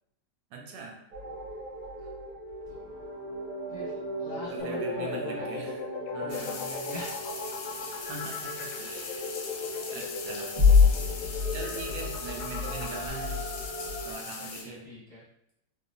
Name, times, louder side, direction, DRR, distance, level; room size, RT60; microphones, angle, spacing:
voice 1, 0.5-1.0 4.5-5.8 6.1-6.7 8.0-9.2 9.9-10.5 11.5-13.4 14.0-14.9, right 4 dB, 80° right, 1 dB, 1.3 m, -41 dB
sound 1, 1.1-14.1, left 4 dB, 40° right, 1.5 m, -30 dB
voice 2, 2.7-3.1 3.7-5.7 6.2-7.2 14.4-15.2, left 1 dB, 30° left, -9 dB, 0.8 m, -43 dB
sound 2, 4.6-13.1, left 6 dB, 70° left, 0.8 m, -38 dB
sound 3, 6.3-14.6, left 5 dB, 85° left, 1.3 m, -40 dB
3.8 x 2.7 x 2.5 m, 0.79 s
omnidirectional pair, 1.8 m